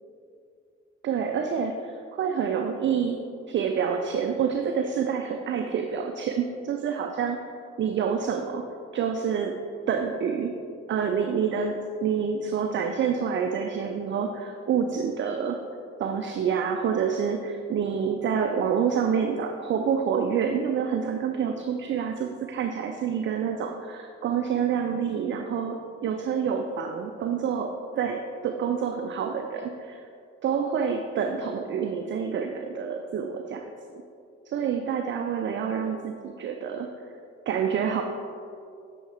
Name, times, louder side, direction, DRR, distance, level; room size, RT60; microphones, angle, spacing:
voice 1, 1.0-7.4 7.8-9.6 9.9-10.6 10.9-15.6 16.0-30.0 30.4-34.0 34.5-36.9 37.5-38.0, right 7 dB, 35° right, 5 dB, 0.5 m, -27 dB
8.9 x 4.6 x 3.3 m, 2.5 s
hypercardioid pair, 50°, 35 cm